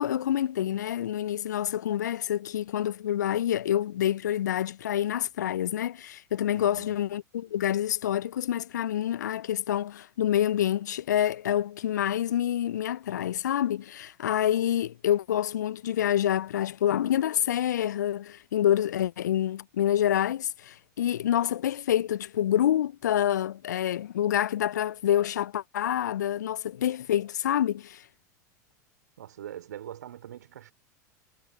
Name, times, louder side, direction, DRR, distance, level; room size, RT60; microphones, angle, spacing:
voice 1, 0.0-28.0, left 11 dB, 70° left, 1.1 m, -27 dB
voice 2, 6.5-7.0 29.2-30.7, right 11 dB, 70° right, 5.2 m, -43 dB
figure-of-eight pair, 80°, 10 cm